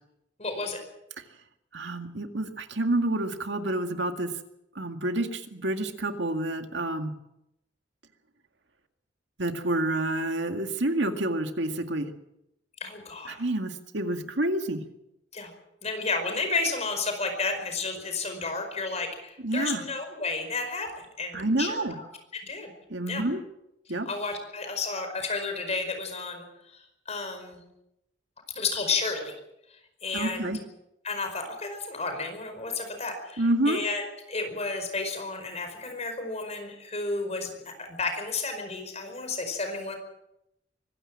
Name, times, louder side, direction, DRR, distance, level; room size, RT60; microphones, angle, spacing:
voice 1, 0.4-0.8 12.8-13.4 15.3-15.5 15.8-20.9 21.2-21.8 22.3-22.7 23.1-23.2 24.0-26.4 26.7-26.8 27.1-27.6 28.5-29.3 30.0-30.5 31.0-34.0 34.3-37.5 37.8-40.0, left 3 dB, 35° left, 6 dB, 5.0 m, -32 dB
voice 2, 1.7-4.3 4.8-7.1 9.4-12.1 13.3-14.8 19.4-19.8 21.3-21.9 22.9-23.4 23.9-24.1 30.1-30.6 33.4-33.8, right 1 dB, 75° right, 6 dB, 2.0 m, -28 dB
24.0 x 16.0 x 7.6 m, 0.85 s
head